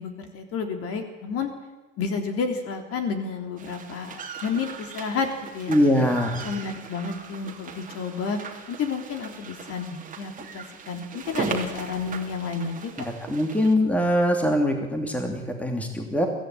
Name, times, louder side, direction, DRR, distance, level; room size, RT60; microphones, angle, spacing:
voice 1, 0.0-1.5 2.0-6.1 6.4-8.4 8.7-12.9, left 5 dB, 35° left, 5 dB, 3.6 m, -31 dB
sound 1, 3.6-13.7, right 6 dB, 20° right, 3.0 m, -38 dB
voice 2, 5.7-6.5 13.0-16.3, equal, 5° left, 3 dB, 2.8 m, -23 dB
23.5 x 15.5 x 9.1 m, 1.2 s
figure-of-eight pair, 85°, 40 cm